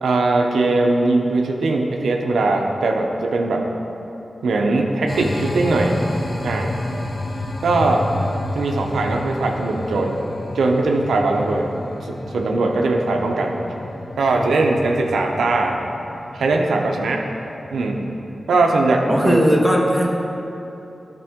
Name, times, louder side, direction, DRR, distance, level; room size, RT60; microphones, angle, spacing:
voice 1, 0.0-3.7 4.4-6.0 6.4-6.7 7.6-8.1 8.5-10.2 10.5-11.7 12.0-13.6 14.2-15.8 16.3-17.2 17.7-18.0 18.5-19.4, right 2 dB, 90° right, 1 dB, 0.6 m, -20 dB
sound 1, 5.1-18.3, left 1 dB, 45° left, 0.8 m, -31 dB
voice 2, 19.1-20.1, equal, 5° left, -1 dB, 1.4 m, -17 dB
10.0 x 5.9 x 3.6 m, 2.9 s
cardioid pair, 45°, 0 cm